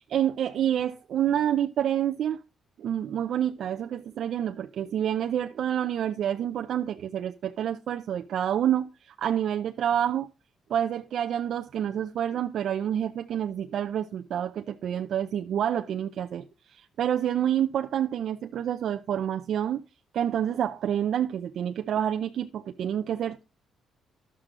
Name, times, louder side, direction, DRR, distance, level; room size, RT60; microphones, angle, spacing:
voice 1, 0.1-2.4 2.8-10.3 10.7-16.4 16.7-19.8 20.1-23.4, right 10 dB, 70° right, 0.6 m, -28 dB
11.5 x 7.6 x 3.7 m
cardioid pair, 90°, 0 cm